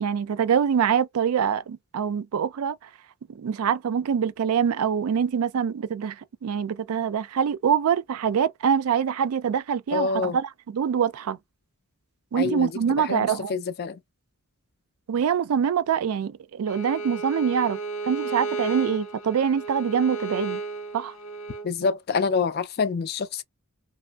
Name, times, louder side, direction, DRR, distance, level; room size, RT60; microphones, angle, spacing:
voice 1, 0.0-2.7 3.4-6.1 6.4-11.4 12.3-13.5 15.1-17.8 18.1-20.6 20.9-21.1, right 7 dB, 80° right, 0.4 m, -24 dB
voice 2, 9.9-10.4 12.3-14.0 21.6-23.4, left 5 dB, 45° left, 0.4 m, -27 dB
Bowed string instrument, 16.7-21.7, right 4 dB, 80° left, 0.8 m, -33 dB
3.0 x 2.5 x 2.2 m
head